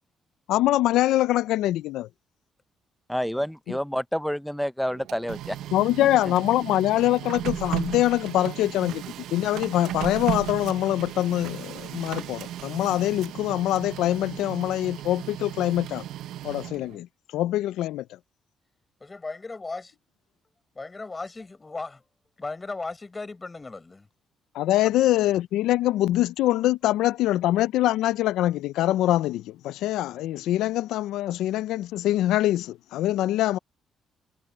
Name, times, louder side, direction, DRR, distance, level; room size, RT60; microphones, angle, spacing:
voice 1, 0.5-2.1 3.7-3.8 5.7-9.0 9.3-16.0 16.4-17.1 17.3-18.1 24.5-33.6, left 14 dB, 90° left, 0.4 m, -24 dB
voice 2, 3.1-5.6, equal, ahead, 0.5 m, -28 dB
Printer, 4.9-17.0, right 12 dB, 85° right, 0.8 m, -35 dB
voice 3, 19.0-19.9 20.7-22.0 22.4-24.1, left 3 dB, 25° left, 6.9 m, -36 dB
cardioid pair, 90°, 0 cm